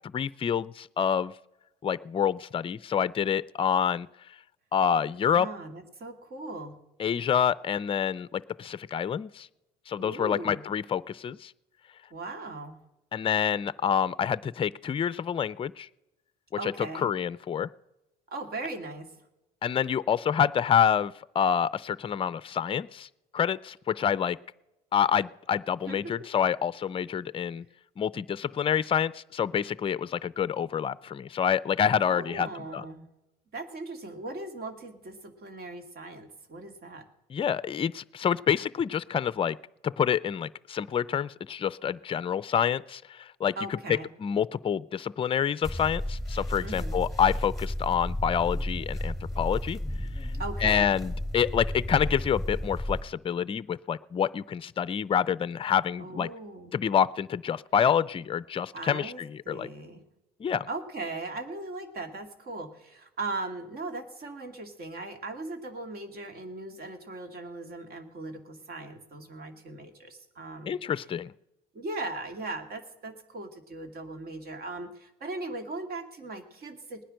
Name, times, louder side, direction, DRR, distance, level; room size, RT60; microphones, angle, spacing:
voice 1, 0.1-1.3 1.8-4.1 4.7-5.5 7.0-9.5 9.9-11.5 13.1-15.9 16.6-16.7 17.0-17.7 19.6-23.1 23.3-24.4 24.9-27.6 28.0-32.8 37.3-39.6 39.8-43.5 44.2-49.8 50.6-56.3 56.7-59.7 60.4-60.7 70.7-71.3, left 8 dB, 30° left, 18 dB, 0.5 m, -27 dB
voice 2, 5.4-6.8 10.0-10.6 12.1-12.8 16.6-17.1 18.3-19.2 25.9-26.2 32.0-33.1 33.5-37.1 43.6-44.1 46.6-46.9 50.4-51.0 56.0-56.7 58.7-60.1 60.7-70.8 71.7-77.0, right 2 dB, 55° right, 7 dB, 2.2 m, -38 dB
sound 1, 45.6-53.0, left 1 dB, ahead, 4.1 m, -33 dB
19.0 x 10.0 x 6.4 m, 0.99 s
hypercardioid pair, 65°, 19 cm